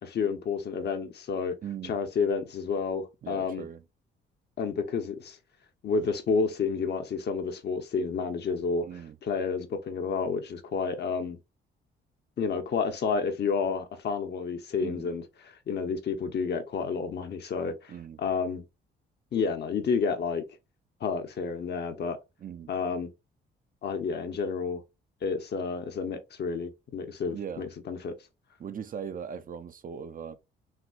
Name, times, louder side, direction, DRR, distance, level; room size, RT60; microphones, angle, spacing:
voice 1, 0.0-1.5 1.8-3.6 4.6-5.4 5.8-8.9 9.2-11.4 12.4-17.9 18.2-18.6 19.3-20.4 21.0-22.2 22.7-23.1 23.8-24.8 25.2-28.1, left 5 dB, 55° left, 0.9 m, -30 dB
voice 2, 1.6-1.9 3.2-3.8 8.8-9.2 14.8-15.1 17.9-18.2 22.4-22.7 27.3-27.7 28.6-30.4, right 7 dB, 45° right, 0.6 m, -39 dB
5.9 x 2.7 x 2.5 m
cardioid pair, 90°, 20 cm